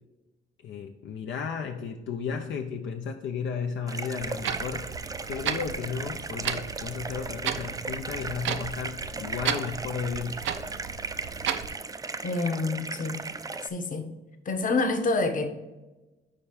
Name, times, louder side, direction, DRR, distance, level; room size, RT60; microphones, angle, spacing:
voice 1, 0.6-4.9 5.3-10.5, left 6 dB, 70° left, 0.6 m, -34 dB
sound 1, 3.9-13.7, right 3 dB, 20° right, 0.4 m, -37 dB
Clock, 4.2-11.8, right 8 dB, 75° right, 0.6 m, -35 dB
voice 2, 12.2-13.2 13.6-14.1 14.4-15.5, left 3 dB, 40° left, 1.0 m, -27 dB
5.1 x 4.4 x 5.8 m
cardioid pair, 90°, 20 cm